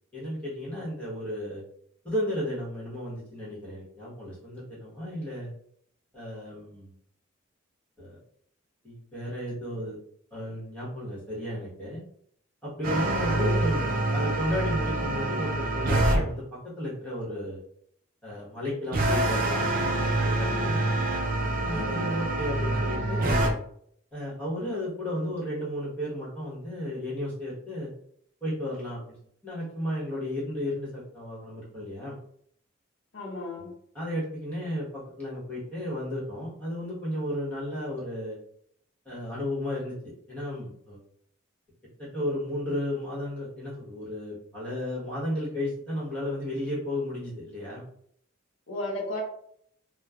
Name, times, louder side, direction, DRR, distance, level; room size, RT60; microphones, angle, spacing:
voice 1, 0.1-1.6 2.0-5.5 6.1-6.9 8.0-8.2 8.8-10.0 10.3-12.0 12.6-17.6 18.2-20.8 21.6-23.6 24.1-27.9 28.4-29.0 29.4-32.2 33.6-38.4 39.0-39.9 40.3-41.0 42.0-47.8, left 1 dB, 5° left, -7 dB, 1.1 m, -33 dB
sound 1, 12.8-16.2 18.9-23.5, right 2 dB, 40° right, 0.4 m, -26 dB
voice 2, 13.3-13.6 21.7-22.1 33.1-33.7 48.7-49.2, left 1 dB, 70° left, -1 dB, 0.6 m, -34 dB
3.1 x 2.1 x 2.3 m, 0.67 s
head